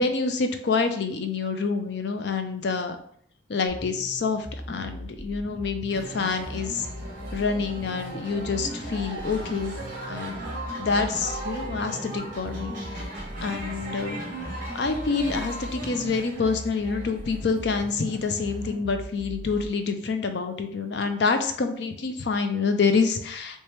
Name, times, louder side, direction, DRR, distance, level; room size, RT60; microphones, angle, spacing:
voice 1, 0.0-3.0 3.5-6.9 7.3-9.7 10.1-10.4 10.8-14.2 14.7-23.6, left 4 dB, 60° left, 7 dB, 0.4 m, -27 dB
sound 1, 3.7-19.7, equal, 75° left, 1.5 m, -40 dB
sound 2, 5.9-18.7, right 2 dB, 40° right, 1.0 m, -38 dB
3.3 x 3.0 x 3.2 m, 0.63 s
head